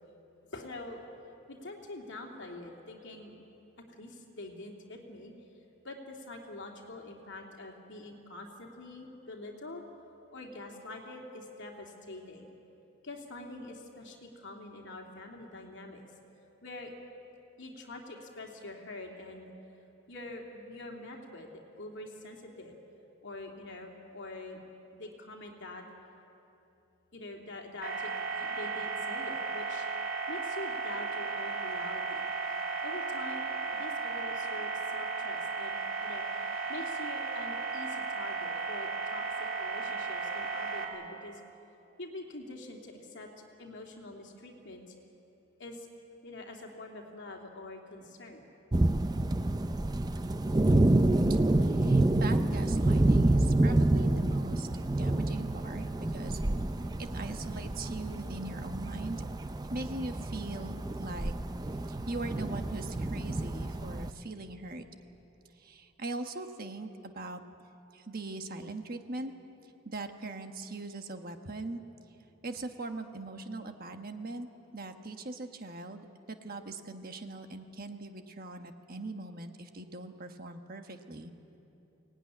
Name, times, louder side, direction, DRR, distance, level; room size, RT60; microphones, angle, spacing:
voice 1, 0.5-1.1 1.5-3.3 3.9-5.3 5.8-9.8 10.3-12.5 13.0-16.1 16.6-16.9 17.6-19.5 20.1-21.5 21.8-22.8 23.2-24.6 24.9-25.8 27.1-29.9 30.3-32.3 32.8-33.4 33.7-41.4 42.0-44.8 45.6-45.9 46.2-48.5, left 2 dB, 55° left, 1 dB, 2.9 m, -45 dB
sound 1, 27.8-40.9, right 4 dB, 65° right, 3.2 m, -35 dB
sound 2, 48.7-64.1, right 1 dB, 20° right, 0.5 m, -28 dB
voice 2, 51.3-54.7 55.0-56.4 57.0-59.3 59.7-61.3 61.9-64.8 65.5-67.4 67.9-69.3 69.8-71.8 72.4-74.5 74.7-81.3, right 2 dB, 40° right, 6 dB, 1.3 m, -41 dB
23.5 x 18.5 x 9.9 m, 2.9 s
head